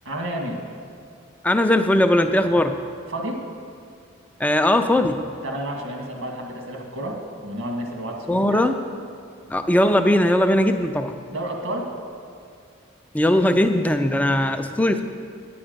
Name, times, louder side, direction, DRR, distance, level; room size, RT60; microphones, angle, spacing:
voice 1, 0.0-0.6 3.1-3.4 5.4-8.6 11.3-11.9 14.1-14.7, right 1 dB, 70° right, 0 dB, 1.6 m, -31 dB
voice 2, 1.4-2.8 4.4-5.2 8.3-8.8 9.5-11.1 13.1-15.0, left 1 dB, 5° left, 7 dB, 0.3 m, -19 dB
9.8 x 8.6 x 5.1 m, 2.3 s
head